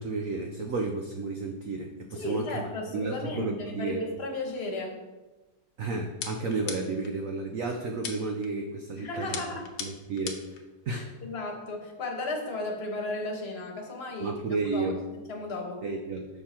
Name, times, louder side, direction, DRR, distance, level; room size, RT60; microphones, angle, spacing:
voice 1, 0.0-2.6 2.9-4.0 5.8-9.4 9.8-11.1 14.2-15.0 15.8-16.3, right 3 dB, 80° right, 3 dB, 0.7 m, -32 dB
voice 2, 2.1-5.0 8.9-9.7 10.9-14.4 14.7-15.8, left 2 dB, 35° left, 1 dB, 1.2 m, -35 dB
sound 1, 6.2-7.1 8.0-8.5 9.3-10.6, left 7 dB, 75° left, 1.5 m, -38 dB
6.6 x 5.8 x 4.3 m, 1.1 s
omnidirectional pair, 2.2 m